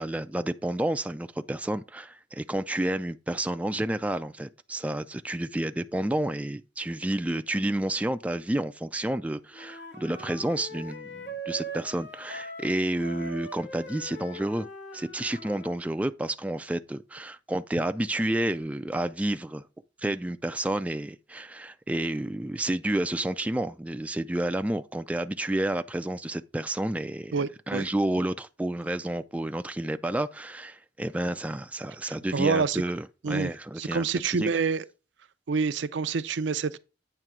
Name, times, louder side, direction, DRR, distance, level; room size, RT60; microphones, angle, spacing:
voice 1, 0.0-14.7 14.9-19.6 20.0-27.3 27.7-34.1 34.4-34.6, right 1 dB, 10° right, 0.3 m, -30 dB
Wind instrument woodwind instrument, 9.5-15.8, right 1 dB, 80° left, 1.3 m, -41 dB
voice 2, 27.3-27.9 32.0-32.8 33.2-33.5 33.8-34.8 35.5-36.8, right 5 dB, 75° right, 0.5 m, -27 dB
9.0 x 3.3 x 6.0 m
head